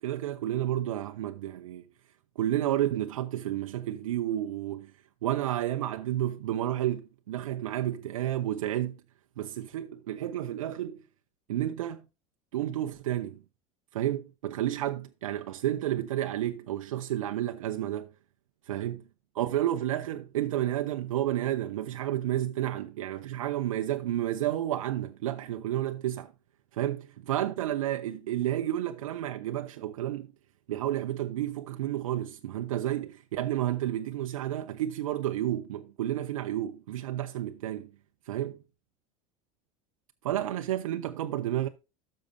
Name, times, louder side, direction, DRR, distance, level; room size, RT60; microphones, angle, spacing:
voice 1, 0.0-1.8 2.4-4.9 5.2-9.0 9.4-11.0 11.5-12.0 12.5-13.4 13.9-18.1 18.7-19.0 19.3-26.3 26.7-30.3 30.7-37.9 38.3-38.5 40.2-41.7, right 12 dB, 80° right, 0.7 m, -31 dB
13.0 x 6.6 x 2.7 m
hypercardioid pair, 85°, 17 cm